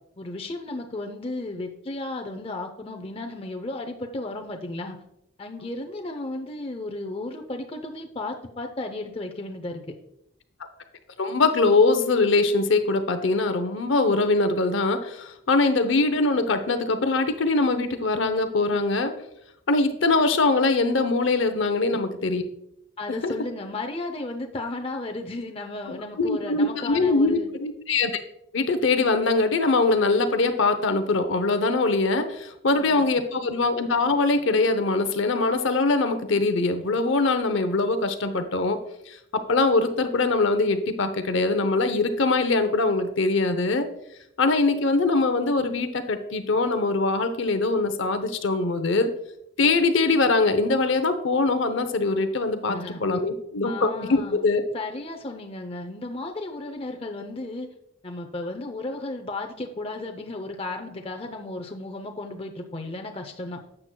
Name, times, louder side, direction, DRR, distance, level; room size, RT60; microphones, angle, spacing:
voice 1, 0.2-5.0 5.4-9.9 21.9-22.0 23.0-27.5 32.7-33.0 52.7-53.0 53.6-54.5 54.7-57.7 58.0-63.6, left 2 dB, 25° left, 4 dB, 0.6 m, -34 dB
voice 2, 11.2-19.1 19.7-22.4 23.2-23.3 25.9-28.1 28.5-38.8 39.1-43.9 44.4-49.1 49.6-54.6, left 3 dB, 65° left, 9 dB, 0.7 m, -22 dB
12.0 x 7.8 x 2.2 m, 0.80 s
head